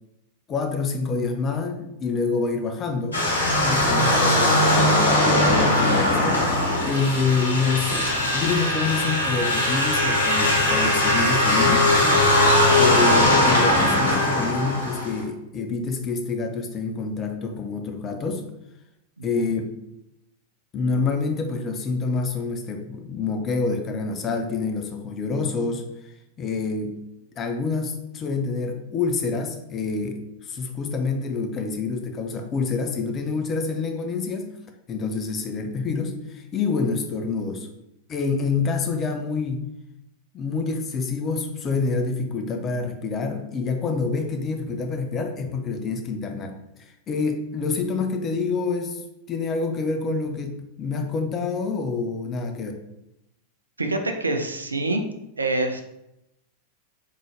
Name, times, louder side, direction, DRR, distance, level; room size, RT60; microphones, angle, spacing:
voice 1, 0.5-3.2 3.6-11.9 12.8-18.4 19.2-19.7 20.7-25.8 26.4-27.0 27.4-34.5 34.9-37.7 38.1-39.7 40.3-46.5 46.8-49.0 49.3-52.7, left 4 dB, 25° left, 4 dB, 0.6 m, -27 dB
sound 1, 3.1-15.2, left 1 dB, 75° left, 1.1 m, -20 dB
voice 2, 19.2-19.5 53.8-55.0 55.4-55.8, right 2 dB, 80° right, 5 dB, 0.5 m, -26 dB
3.9 x 3.7 x 3.2 m, 0.86 s
figure-of-eight pair, 90°, 0 cm